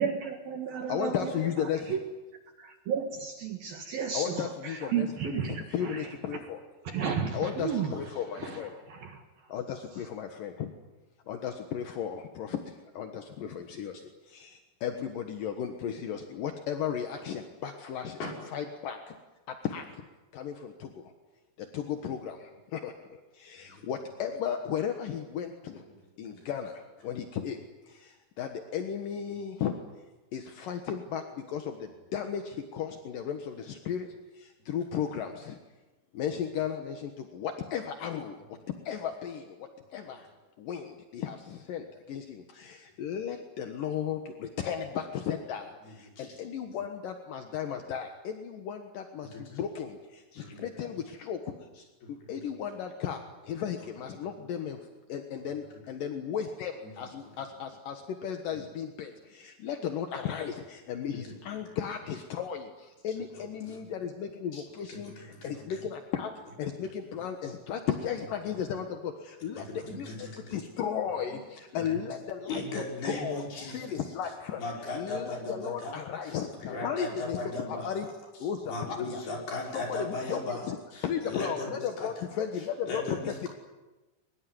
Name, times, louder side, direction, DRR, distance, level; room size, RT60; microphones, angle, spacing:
voice 1, 0.0-2.0 2.9-6.1 6.8-8.0 8.4-8.6 8.9-9.2, right 7 dB, 60° right, 4 dB, 2.8 m, -33 dB
voice 2, 0.9-2.0 4.1-6.6 7.3-8.7 9.5-10.7 11.3-18.2 18.5-19.1 19.5-20.0 20.3-21.1 21.6-25.8 26.2-27.6 27.9-29.8 30.3-34.1 34.3-35.6 36.1-38.4 38.9-40.3 40.6-51.9 52.3-66.3 66.6-69.7 70.0-70.1 70.4-74.6 74.9-77.4 77.7-78.1 78.4-79.2 79.7-80.8 81.0-83.5, left 8 dB, 70° left, 5 dB, 2.1 m, -35 dB
voice 3, 26.2-26.5 45.8-46.4 46.7-46.8 49.2-49.6 50.4-50.7 52.0-52.1 58.5-58.6 61.1-61.3 63.6-63.8 64.5-64.6 64.9-65.8 67.4-67.5 69.6-70.6 71.7-72.0 72.5-74.0 74.6-75.9 76.2-76.4 76.7-78.0 78.7-80.7 80.9-82.1 82.8-83.5, left 2 dB, 50° left, -1 dB, 7.5 m, -38 dB
23.5 x 22.0 x 9.5 m, 1.1 s
omnidirectional pair, 5.9 m